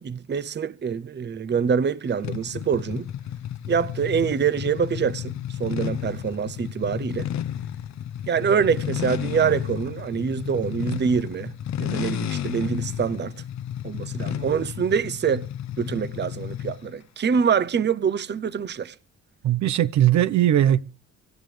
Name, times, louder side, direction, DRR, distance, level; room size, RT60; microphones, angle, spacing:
voice 1, 0.0-3.1 3.7-7.3 8.3-11.5 11.8-13.3 13.8-15.4 15.8-18.9, right 7 dB, 35° right, 0.8 m, -25 dB
sound 1, 2.2-16.9, left 10 dB, 65° left, 0.9 m, -32 dB
voice 2, 19.4-20.8, right 11 dB, 70° right, 1.0 m, -19 dB
25.5 x 13.5 x 3.4 m
cardioid pair, 90°, 30 cm